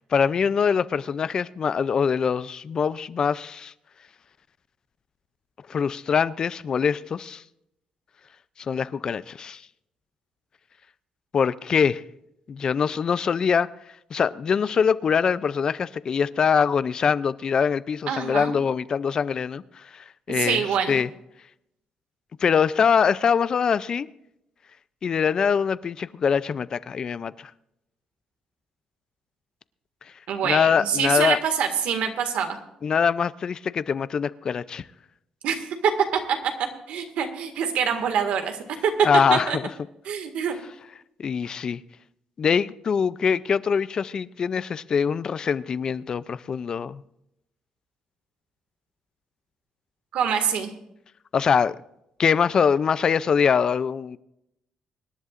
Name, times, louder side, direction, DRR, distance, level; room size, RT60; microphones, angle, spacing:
voice 1, 0.1-3.7 5.7-7.4 8.7-9.6 11.3-12.0 12.5-13.7 14.1-21.1 22.4-24.1 25.0-27.5 30.4-31.4 32.8-34.8 39.0-39.6 41.2-41.8 42.4-47.0 51.3-51.8 52.2-54.2, left 6 dB, 35° left, 0.4 m, -23 dB
voice 2, 18.1-18.6 20.3-21.0 30.3-32.6 35.4-36.5 36.9-38.9 39.3-39.6 40.1-40.6 50.1-50.7, right 7 dB, 80° right, 1.9 m, -25 dB
25.0 x 11.0 x 2.5 m
cardioid pair, 170°, 2 cm